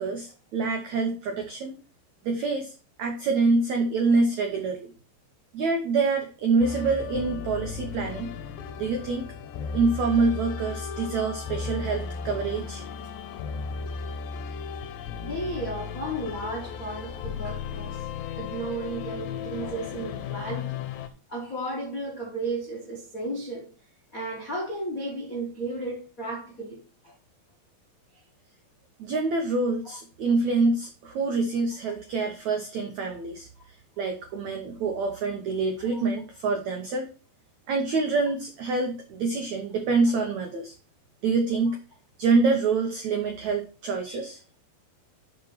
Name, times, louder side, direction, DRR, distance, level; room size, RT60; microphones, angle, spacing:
voice 1, 0.0-1.8 2.2-4.9 5.5-8.3 8.8-9.3 9.7-12.8 29.0-33.5 34.0-37.1 37.7-40.7 41.2-41.8 42.2-44.4, right 3 dB, 85° right, 1.6 m, -26 dB
sound 1, 6.6-21.1, left 6 dB, 80° left, 3.1 m, -35 dB
voice 2, 15.2-18.0 18.4-20.8 21.3-23.7 24.1-27.1 35.9-36.0, right 2 dB, 60° left, 0.8 m, -34 dB
7.1 x 5.2 x 5.7 m
omnidirectional pair, 4.9 m